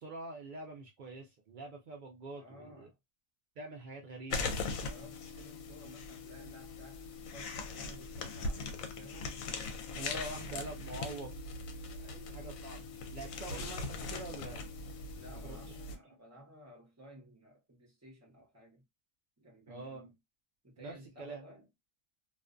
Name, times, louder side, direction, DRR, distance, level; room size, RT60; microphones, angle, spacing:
voice 1, 0.0-2.9 3.6-4.6 9.9-11.3 12.3-12.8 13.1-14.6 15.4-15.8 19.7-20.1 20.8-21.4, right 2 dB, 80° right, 0.4 m, -45 dB
voice 2, 2.3-3.0 4.8-9.3 12.0-12.5 15.1-18.8 19.4-20.2 20.6-21.7, right 1 dB, 15° right, 0.7 m, -55 dB
sound 1, 4.3-16.0, left 3 dB, 80° left, 1.0 m, -40 dB
2.5 x 2.2 x 2.4 m
omnidirectional pair, 1.4 m